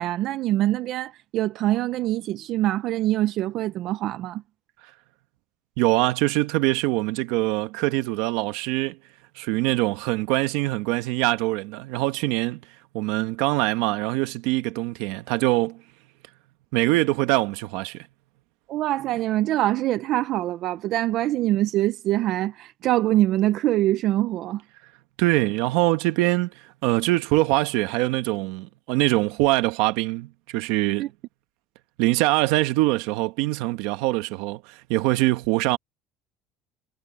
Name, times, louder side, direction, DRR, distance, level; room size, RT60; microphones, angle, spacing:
voice 1, 0.0-4.4 18.7-24.6 31.0-31.1, right 14 dB, 55° right, 0.5 m, -24 dB
voice 2, 5.8-9.0 9.3-12.6 12.9-15.8 16.7-18.0 25.2-31.1 32.0-35.8, right 19 dB, 80° right, 1.3 m, -23 dB
cardioid pair, 140°, 0 cm